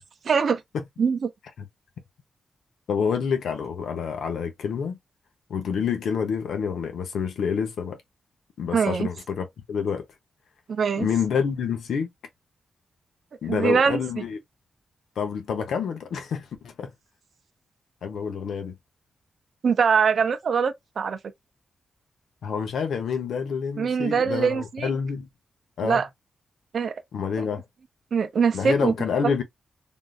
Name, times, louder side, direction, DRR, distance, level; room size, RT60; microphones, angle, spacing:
voice 1, 0.2-0.6 1.0-1.3 8.7-9.1 10.7-11.1 13.5-14.0 19.6-21.2 23.8-24.9 25.8-26.1 26.7-26.9 28.1-28.9, right 6 dB, 55° right, 0.5 m, -22 dB
voice 2, 2.9-5.0 5.5-8.0 8.6-10.0 11.0-12.1 13.4-14.4 15.2-16.9 18.0-18.8 22.4-25.3 25.8-26.0 27.1-27.6 28.5-29.4, left 6 dB, 90° left, 0.8 m, -28 dB
3.6 x 2.5 x 2.4 m
wide cardioid pair, 125°, 0 cm